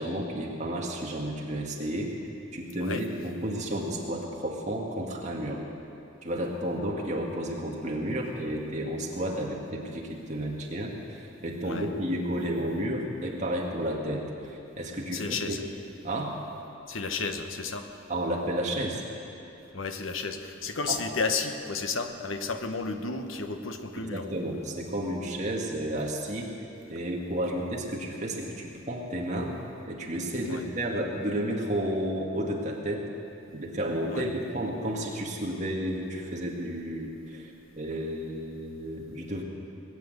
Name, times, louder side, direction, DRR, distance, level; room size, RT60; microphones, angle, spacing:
voice 1, 0.0-2.1 2.5-5.6 6.2-15.6 16.0-16.3 18.1-19.0 20.9-21.0 24.0-26.5 26.9-29.5 29.9-33.1 33.5-37.5 37.8-39.4, right 1 dB, 35° right, -1 dB, 2.0 m, -32 dB
voice 2, 15.1-15.6 16.9-17.9 19.7-24.3 30.5-30.6 34.1-34.3, left 4 dB, 80° left, 7 dB, 1.1 m, -32 dB
20.0 x 8.6 x 8.2 m, 2.8 s
head